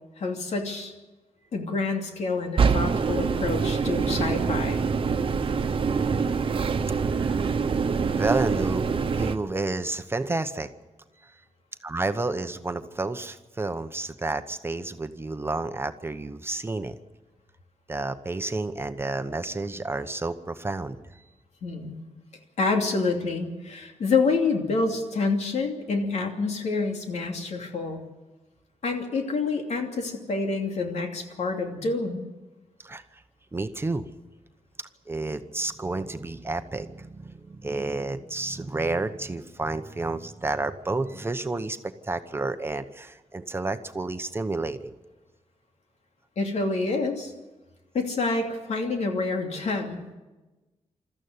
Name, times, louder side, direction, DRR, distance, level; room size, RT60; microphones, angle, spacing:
voice 1, 0.2-0.9 1.5-4.8 21.6-22.0 22.6-28.0 28.8-32.3 46.4-47.3 47.9-50.0, left 3 dB, 75° left, 3 dB, 2.8 m, -27 dB
sound 1, 2.6-9.4, right 5 dB, 50° right, 1.1 m, -25 dB
voice 2, 7.1-7.6 8.1-8.9 9.1-10.7 11.2-11.4 11.8-16.9 17.9-21.2 32.8-33.2 33.5-34.1 35.1-45.0, right 2 dB, 20° right, 9 dB, 0.9 m, -30 dB
21.5 x 14.0 x 9.6 m, 1.2 s
wide cardioid pair, 125°, 11 cm